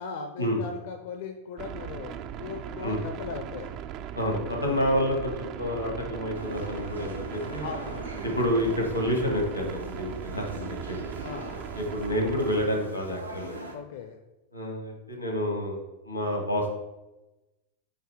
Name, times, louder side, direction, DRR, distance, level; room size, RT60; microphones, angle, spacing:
voice 1, 0.0-3.8 4.4-4.6 7.6-8.2 11.2-11.6 13.7-14.2, left 5 dB, 55° left, 5 dB, 0.5 m, -39 dB
sound 1, 1.6-12.7, right 9 dB, 40° right, 0.3 m, -39 dB
voice 2, 4.1-7.7 8.2-11.2 11.8-13.6 14.5-15.8 16.0-16.6, equal, 90° left, 1 dB, 1.4 m, -29 dB
sound 2, 6.3-13.8, right 1 dB, 85° right, 0.9 m, -41 dB
7.6 x 2.7 x 4.8 m, 1.0 s
figure-of-eight pair, 90°, 0 cm